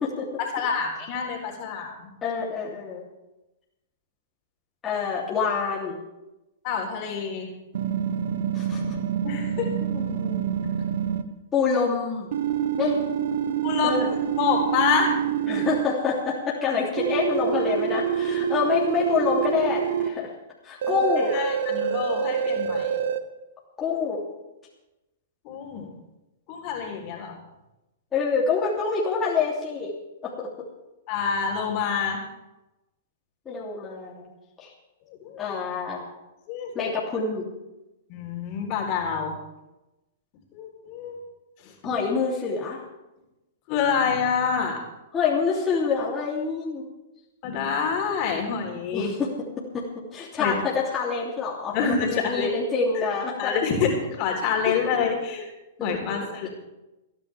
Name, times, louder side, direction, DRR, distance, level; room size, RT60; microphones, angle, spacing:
voice 1, 0.4-2.1 6.6-7.5 9.2-9.8 13.6-15.2 20.9-21.0 21.3-22.9 25.4-25.9 26.5-27.4 31.1-32.2 35.1-35.4 36.5-36.9 38.1-39.3 40.5-41.2 41.6-41.7 43.7-44.8 47.4-49.1 50.4-50.6 51.7-52.6 52.9-53.1 53.4-55.5 55.8-56.5, left 6 dB, 45° left, 0 dB, 3.8 m, -27 dB
voice 2, 2.2-3.0 4.8-6.0 8.5-9.0 9.9-10.5 11.5-12.3 12.8-13.0 13.8-14.1 15.4-20.3 20.6-21.3 23.8-24.2 28.1-29.9 30.2-30.5 33.4-34.3 34.6-34.7 35.4-36.0 36.7-37.5 41.8-42.8 45.1-46.8 48.9-49.3 49.7-53.5 55.8-55.9, left 5 dB, 20° left, -5 dB, 3.0 m, -26 dB
sound 1, 7.7-11.2 12.3-15.8 17.0-20.1 20.8-23.2, right 8 dB, 65° right, 1.0 m, -26 dB
28.5 x 10.0 x 3.5 m, 1.0 s
hypercardioid pair, 115°, 0 cm